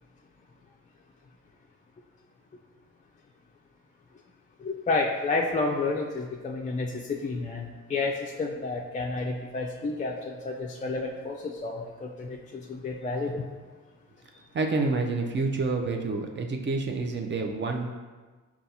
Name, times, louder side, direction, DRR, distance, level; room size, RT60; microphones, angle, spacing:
voice 1, 4.6-13.4, left 3 dB, 25° left, -1 dB, 0.3 m, -30 dB
voice 2, 14.5-17.9, right 3 dB, 35° right, 3 dB, 0.5 m, -28 dB
5.1 x 2.4 x 2.8 m, 1.3 s
cardioid pair, 65°, 34 cm